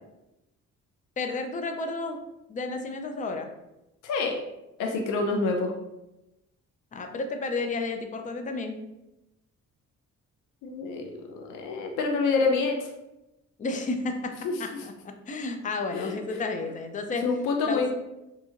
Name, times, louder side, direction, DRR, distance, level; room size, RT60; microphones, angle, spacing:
voice 1, 1.2-2.2 2.5-3.5 6.9-8.8 13.6-17.3 17.6-17.8, left 3 dB, 25° left, 5 dB, 0.4 m, -32 dB
voice 2, 4.0-4.3 4.8-5.7 10.6-12.9 14.4-14.5 15.9-16.4 17.2-17.9, left 4 dB, 85° left, 2 dB, 0.5 m, -27 dB
2.8 x 2.6 x 2.4 m, 0.94 s
cardioid pair, 90°, 30 cm